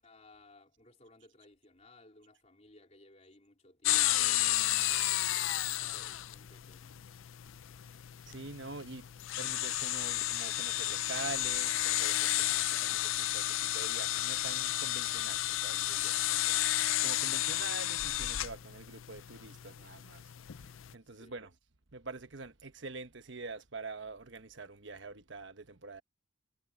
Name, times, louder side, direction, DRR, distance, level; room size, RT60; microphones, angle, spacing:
voice 1, 0.0-7.0 21.0-21.4, left 2 dB, 35° left, 3.8 m, -60 dB
sound 1, 3.8-20.9, left 15 dB, 75° left, 0.5 m, -32 dB
voice 2, 8.3-9.1 9.4-16.6 17.0-20.2 20.9-21.5 21.9-26.0, right 3 dB, 60° right, 1.2 m, -45 dB
head